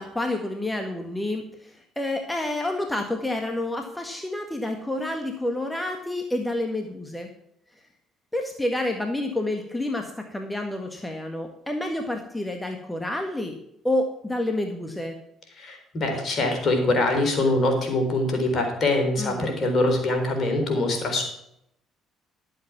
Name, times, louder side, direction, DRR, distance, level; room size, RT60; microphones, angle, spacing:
voice 1, 0.0-7.3 8.3-13.5 13.8-15.2 19.2-19.5, left 1 dB, 10° left, 4 dB, 1.7 m, -29 dB
voice 2, 15.6-21.2, left 2 dB, 50° left, 4 dB, 3.9 m, -23 dB
11.5 x 7.9 x 6.0 m, 0.76 s
supercardioid pair, 65°, 0 cm